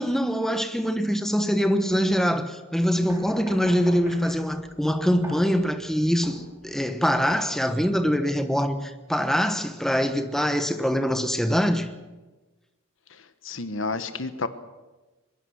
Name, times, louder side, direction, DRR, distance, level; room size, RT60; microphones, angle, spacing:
voice 1, 0.0-11.9, equal, ahead, 1.1 m, -24 dB
sound 1, 2.9-7.9, equal, 15° right, 5.3 m, -42 dB
voice 2, 13.4-14.5, left 3 dB, 65° left, 1.2 m, -30 dB
22.5 x 21.5 x 6.4 m
head